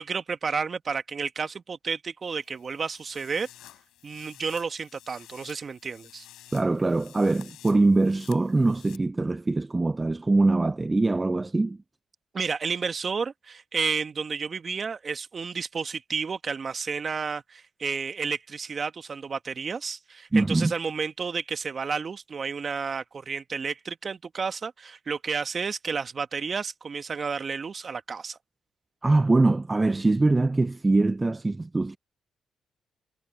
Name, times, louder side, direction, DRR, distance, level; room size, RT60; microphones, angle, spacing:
voice 1, 0.0-3.5 4.0-6.3 12.3-28.4, right 5 dB, 45° right, 1.7 m, -31 dB
sound 1, 2.2-9.0, left 13 dB, 85° left, 4.0 m, -52 dB
voice 2, 6.5-11.8 20.3-20.7 29.0-32.0, right 2 dB, 25° right, 0.5 m, -23 dB
supercardioid pair, 65°, 0 cm